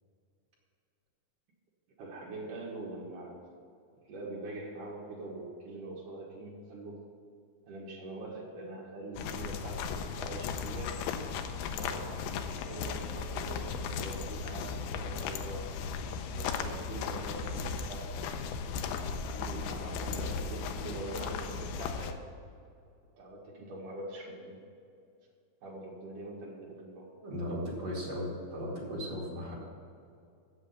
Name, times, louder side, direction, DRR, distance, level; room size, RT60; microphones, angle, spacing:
voice 1, 2.0-3.4 4.0-7.0 7.7-11.0 11.7-15.7 16.3-18.5 19.3-22.3 23.2-24.6 25.6-27.1, right 2 dB, 60° right, -4 dB, 2.3 m, -43 dB
sound 1, 9.2-22.1, left 5 dB, 85° left, 2.6 m, -36 dB
voice 2, 27.2-29.5, equal, 45° right, -5 dB, 2.3 m, -36 dB
8.4 x 7.4 x 8.3 m, 2.4 s
omnidirectional pair, 5.9 m